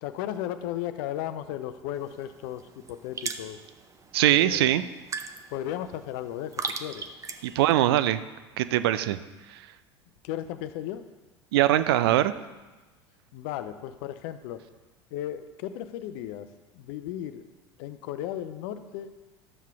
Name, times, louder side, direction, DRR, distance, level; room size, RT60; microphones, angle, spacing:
voice 1, 0.0-3.6 4.3-4.7 5.5-7.0 10.2-11.0 13.3-14.6 15.1-16.5 16.7-17.4 17.8-19.1, left 12 dB, 55° left, 11 dB, 0.6 m, -35 dB
sound 1, 1.9-7.7, right 5 dB, 20° right, 0.7 m, -39 dB
voice 2, 4.1-4.8 7.4-8.2 8.6-9.2 9.4-9.7 11.5-12.3, right 13 dB, 60° right, 13 dB, 0.5 m, -22 dB
12.0 x 7.4 x 3.6 m, 1.2 s
figure-of-eight pair, 75°, 15 cm